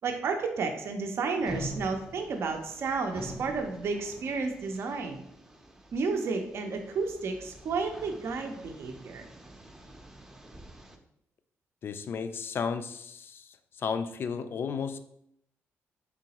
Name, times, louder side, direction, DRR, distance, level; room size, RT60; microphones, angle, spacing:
voice 1, 0.0-5.2 5.9-9.2, right 4 dB, 60° right, 0.5 m, -32 dB
sound 1, 1.4-11.0, equal, 10° right, 0.5 m, -46 dB
voice 2, 11.8-15.0, left 6 dB, 50° left, 0.3 m, -34 dB
3.8 x 3.5 x 2.9 m
cardioid pair, 95°, 5 cm